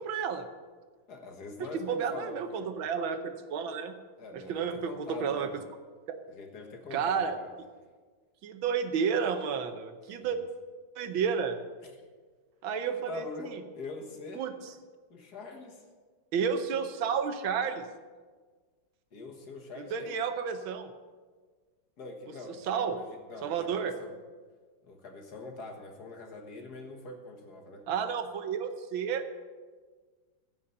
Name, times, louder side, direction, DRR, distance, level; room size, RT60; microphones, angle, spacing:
voice 1, 0.1-0.5 1.6-3.9 4.3-5.5 6.9-7.4 8.4-10.4 11.0-11.6 12.6-13.6 14.4-14.5 16.3-17.9 19.8-20.9 22.7-23.0 23.4-24.0 27.9-29.4, right 6 dB, 80° right, 8 dB, 1.7 m, -31 dB
voice 2, 1.1-2.7 4.2-5.6 6.3-7.6 10.1-10.4 11.8-12.1 12.8-14.4 15.1-15.8 19.1-20.2 22.0-24.2 24.8-27.9, left 3 dB, 55° left, 2 dB, 1.9 m, -44 dB
15.5 x 5.6 x 7.7 m, 1.5 s
omnidirectional pair, 2.1 m